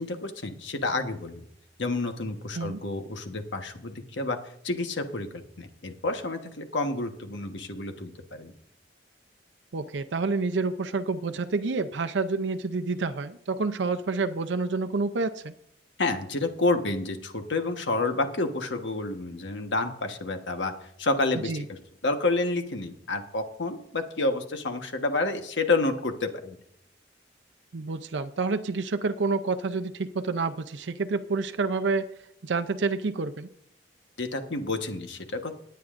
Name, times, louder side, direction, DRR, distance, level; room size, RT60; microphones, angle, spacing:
voice 1, 0.0-1.4 1.8-4.4 4.6-8.5 16.0-20.7 21.0-21.8 22.0-26.6 34.2-35.6, left 2 dB, 85° left, 6 dB, 1.3 m, -29 dB
voice 2, 9.7-15.5 21.3-21.6 27.7-32.0 32.4-33.5, right 4 dB, 80° right, 9 dB, 0.6 m, -28 dB
19.0 x 9.3 x 2.6 m, 0.74 s
head